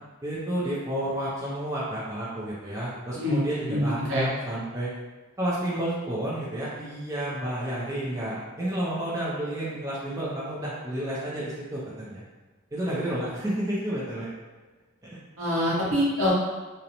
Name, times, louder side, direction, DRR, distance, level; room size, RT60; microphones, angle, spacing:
voice 1, 0.2-4.9 5.4-12.2 12.7-14.3 15.0-15.2, right 1 dB, 15° right, -8 dB, 0.4 m, -31 dB
voice 2, 3.1-4.3 15.4-16.3, equal, 65° right, -7 dB, 0.9 m, -25 dB
2.5 x 2.0 x 2.8 m, 1.3 s
head